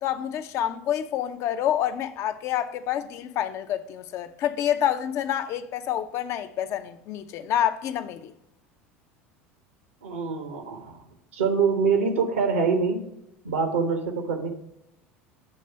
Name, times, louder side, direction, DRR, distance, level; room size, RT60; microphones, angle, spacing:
voice 1, 0.0-8.3, left 10 dB, 45° left, 0.4 m, -28 dB
voice 2, 10.0-11.0 11.3-13.1 13.4-14.5, right 5 dB, 75° right, 1.0 m, -25 dB
6.4 x 3.3 x 5.4 m
figure-of-eight pair, 70°, 7 cm